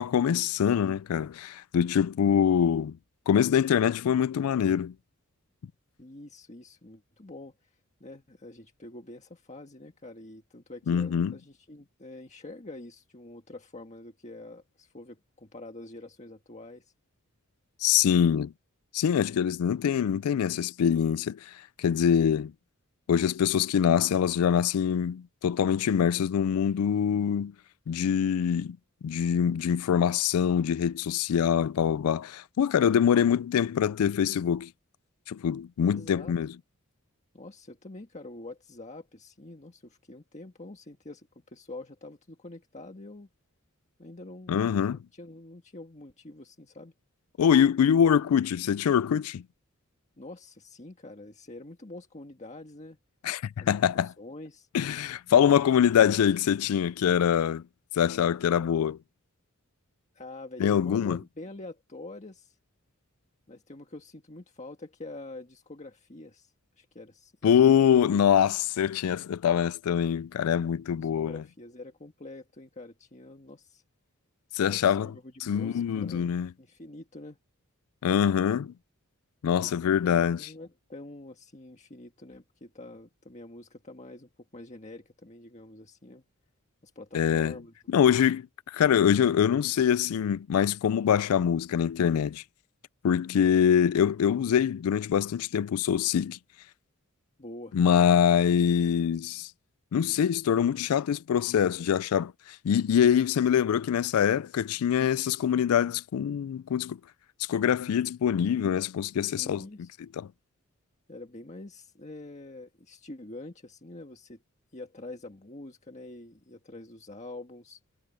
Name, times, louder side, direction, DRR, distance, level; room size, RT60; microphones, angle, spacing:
voice 1, 0.0-3.0 3.3-4.9 10.9-11.3 17.8-18.5 18.9-22.5 23.1-27.5 27.9-28.8 29.0-34.7 35.3-36.5 44.5-45.0 47.4-49.4 53.2-54.1 54.7-57.6 57.9-59.0 60.6-61.2 67.4-71.4 74.5-75.1 75.4-76.5 78.0-78.7 79.4-80.5 87.1-87.6 87.9-92.4 93.0-96.4 97.7-99.5 99.9-107.0 107.5-109.6 110.2-110.3, left 8 dB, 80° left, 0.4 m, -24 dB
voice 2, 6.0-7.7 8.0-16.9 35.9-36.3 37.3-43.3 44.0-44.6 44.9-46.9 50.2-53.0 53.6-54.7 60.1-62.6 63.5-67.9 70.9-73.8 74.6-77.4 79.6-86.2 86.8-87.7 97.4-97.8 109.4-109.9 111.1-114.4 114.7-117.8, left 2 dB, 35° left, 1.6 m, -46 dB
head